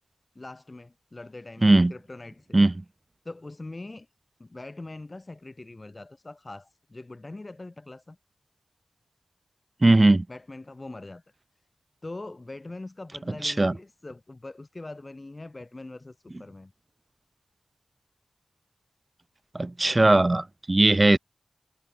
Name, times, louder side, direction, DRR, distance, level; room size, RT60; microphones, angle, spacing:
voice 1, 0.3-2.6 3.2-4.1 4.4-8.2 10.3-11.2 12.0-16.7, left 2 dB, 35° left, 4.4 m, -42 dB
voice 2, 1.6-1.9 2.5-2.7 9.8-10.2 13.4-13.7 19.5-21.2, right 2 dB, 30° right, 0.9 m, -19 dB
cardioid pair, 40°, 0 cm